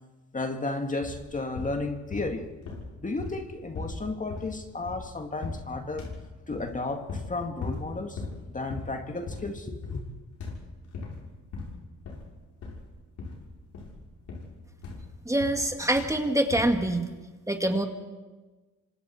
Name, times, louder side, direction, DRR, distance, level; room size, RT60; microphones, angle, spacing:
voice 1, 0.3-2.5 3.0-6.1 6.5-10.0, left 2 dB, 25° left, 2.0 m, -33 dB
sound 1, 1.0-1.3 1.5-2.4 2.6-5.1 5.4-5.7 6.0-6.8 7.1-7.3 7.6-7.9 8.2-8.4 8.7-9.0 9.3-9.6 9.8-10.1 10.4-11.2 11.5-12.3 12.6-12.9 13.2-13.5 13.7-15.7 15.9-16.2 16.5-16.8, left 4 dB, 70° left, 7.1 m, -38 dB
voice 2, 15.3-17.1 17.5-17.9, right 1 dB, 10° right, 2.1 m, -25 dB
27.0 x 25.5 x 4.4 m
cardioid pair, 90°, 30 cm